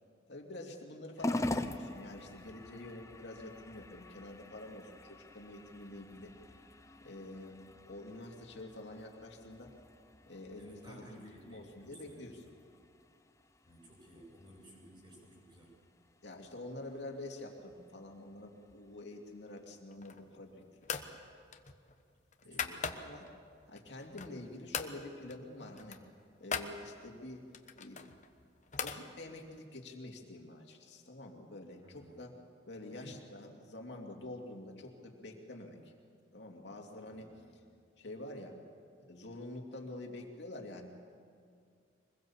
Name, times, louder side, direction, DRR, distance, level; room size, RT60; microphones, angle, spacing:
voice 1, 0.3-6.3 7.0-7.6 7.9-9.7 10.3-12.4 16.2-21.0 22.4-23.3 23.7-26.0 26.4-27.4 27.7-28.0 28.8-32.3 32.7-35.9 36.3-37.3 38.0-38.6 39.0-40.9, left 2 dB, 65° left, 1 dB, 2.8 m, -47 dB
sound 1, 1.2-19.8, left 1 dB, 15° left, 0.7 m, -45 dB
voice 2, 10.6-12.3 13.6-15.7 22.4-23.0 31.8-32.2 32.9-33.2 37.1-37.6, equal, 25° right, -2 dB, 7.8 m, -56 dB
sound 2, 19.9-20.4 20.8-21.1 21.5-23.3 23.8-24.4 24.7-25.0 25.3-25.4 25.7-26.7 27.5-29.0, left 6 dB, 40° left, 1.1 m, -40 dB
24.5 x 21.0 x 7.3 m, 2.3 s
head